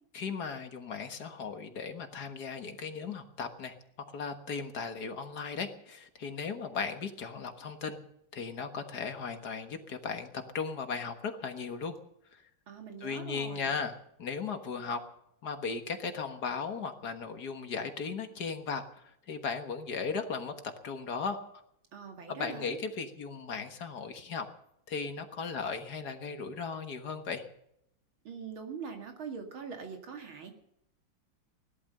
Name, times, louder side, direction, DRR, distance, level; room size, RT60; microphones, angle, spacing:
voice 1, 0.1-3.8 4.1-8.0 8.3-11.9 12.3-12.4 13.0-15.0 15.4-20.5 20.8-21.6 22.3-24.5 24.9-27.5, left 5 dB, 55° left, 7 dB, 1.9 m, -37 dB
voice 2, 12.7-13.7 21.9-22.8 28.2-30.5, right 6 dB, 90° right, 4 dB, 3.0 m, -42 dB
17.0 x 12.0 x 6.7 m, 0.75 s
omnidirectional pair, 2.2 m